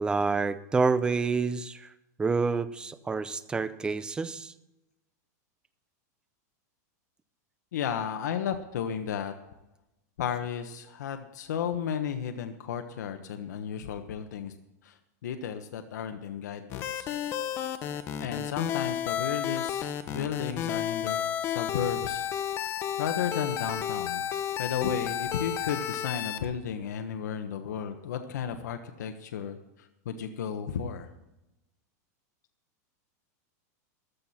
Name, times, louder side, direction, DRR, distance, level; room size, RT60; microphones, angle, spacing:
voice 1, 0.0-1.9 2.2-4.5, right 4 dB, 10° right, 13 dB, 0.6 m, -28 dB
voice 2, 7.7-9.3 10.2-14.5 14.8-15.0 15.2-17.1 18.2-22.3 22.6-24.2 24.6-29.6 30.0-31.1, left 8 dB, 85° left, 6 dB, 1.3 m, -33 dB
sound 1, 16.7-26.4, left 10 dB, 30° left, 1.0 m, -32 dB
14.5 x 12.5 x 4.4 m, 0.93 s
supercardioid pair, 160°, 9 cm